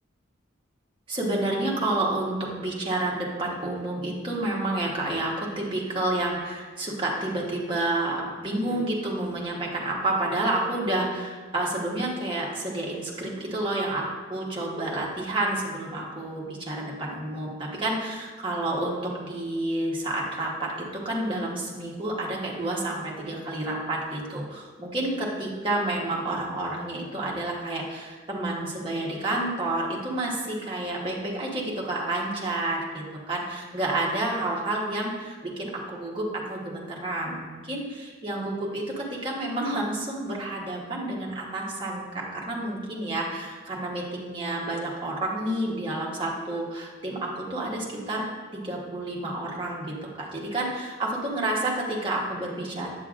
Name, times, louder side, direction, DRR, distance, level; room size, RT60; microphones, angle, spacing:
voice 1, 1.1-48.2 48.5-52.9, right 2 dB, 25° right, -3 dB, 1.1 m, -29 dB
8.4 x 6.7 x 2.4 m, 1.4 s
head